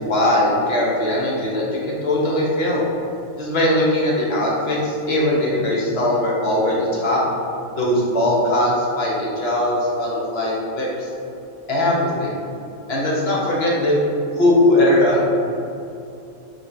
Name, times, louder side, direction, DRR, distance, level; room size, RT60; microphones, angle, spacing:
voice 1, 0.1-2.8 3.4-7.2 7.8-11.1 11.7-12.4 12.9-14.0 14.3-15.2, left 1 dB, 50° left, -5 dB, 1.0 m, -20 dB
5.1 x 3.5 x 2.6 m, 2.7 s
omnidirectional pair, 1.4 m